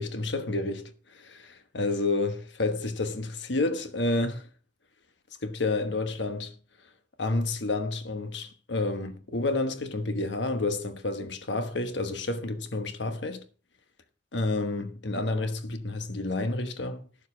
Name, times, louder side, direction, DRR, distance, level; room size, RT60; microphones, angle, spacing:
voice 1, 0.0-4.5 5.4-6.5 7.2-13.4 14.3-17.0, left 2 dB, 70° left, 1.2 m, -30 dB
12.0 x 7.1 x 4.9 m
head